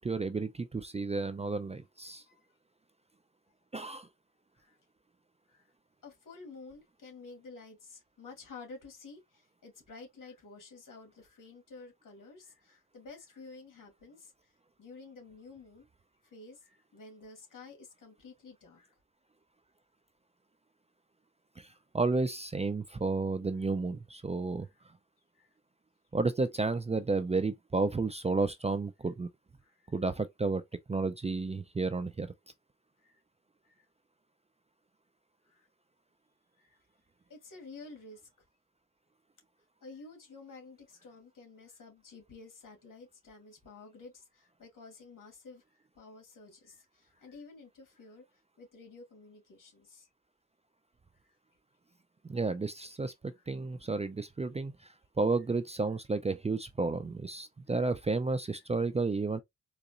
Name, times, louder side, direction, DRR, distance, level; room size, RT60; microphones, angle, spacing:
voice 1, 0.0-2.2 3.7-4.1 21.6-21.7 21.9-24.7 26.1-29.3 29.9-30.6 30.9-32.3 52.3-54.7 55.2-59.4, right 3 dB, 20° right, 0.4 m, -32 dB
voice 2, 6.0-14.5 14.8-15.9 16.2-18.9 24.6-24.7 25.3-25.5 29.6-29.9 33.0-33.2 33.6-33.9 35.5-35.7 36.6-36.8 37.3-38.2 39.8-48.2 48.6-50.1 51.2-51.3 53.3-53.5 57.7-57.8, left 3 dB, 75° left, 2.1 m, -51 dB
3.9 x 2.9 x 2.5 m
wide cardioid pair, 105°, 32 cm